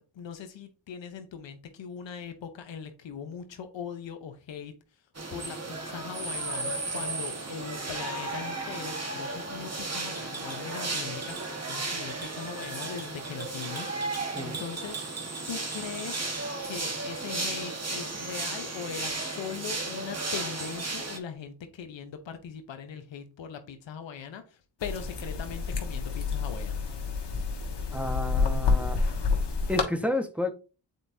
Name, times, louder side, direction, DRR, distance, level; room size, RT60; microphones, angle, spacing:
voice 1, 0.1-4.7 5.3-15.0 15.5-16.2 16.6-26.8, left 7 dB, 85° left, 1.0 m, -40 dB
sound 1, 5.1-21.2, right 3 dB, 35° right, 1.5 m, -34 dB
sound 2, 24.8-29.8, left 4 dB, 65° left, 1.5 m, -28 dB
voice 2, 27.9-29.0 29.7-30.5, left 1 dB, 5° right, 1.3 m, -30 dB
8.1 x 4.4 x 2.7 m
cardioid pair, 45°, 44 cm